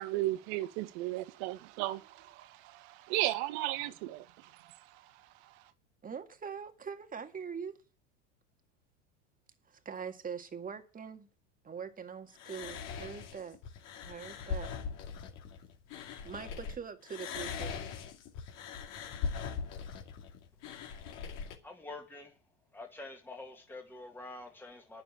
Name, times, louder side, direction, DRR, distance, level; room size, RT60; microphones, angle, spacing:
voice 1, 0.0-5.0 5.4-5.5, right 17 dB, 60° right, 1.1 m, -35 dB
voice 2, 6.0-7.8 9.7-11.3 11.6-13.6 14.0-14.7 16.2-17.8, right 6 dB, 20° right, 1.8 m, -43 dB
sound 1, 12.4-16.7 17.1-21.6, left 6 dB, 60° left, 2.5 m, -40 dB
voice 3, 21.6-22.3 22.7-25.0, left 2 dB, 5° left, 2.0 m, -46 dB
9.8 x 6.9 x 8.7 m
hypercardioid pair, 95°, 37 cm